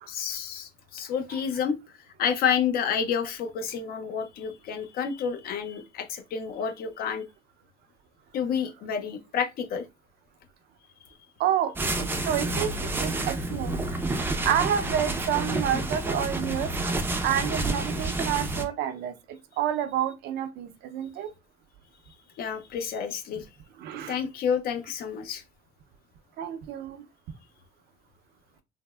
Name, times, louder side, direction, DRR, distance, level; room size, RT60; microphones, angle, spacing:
voice 1, 0.1-1.8 2.2-7.3 8.3-9.9 22.4-23.5 24.1-25.4, left 7 dB, 65° left, 0.5 m, -29 dB
voice 2, 11.4-13.8 14.4-16.7 17.2-21.3 23.8-24.2 26.4-27.0, right 10 dB, 75° right, 0.5 m, -29 dB
sound 1, 11.8-18.7, right 2 dB, 15° right, 0.4 m, -29 dB
3.3 x 2.0 x 2.2 m
cardioid pair, 110°, 17 cm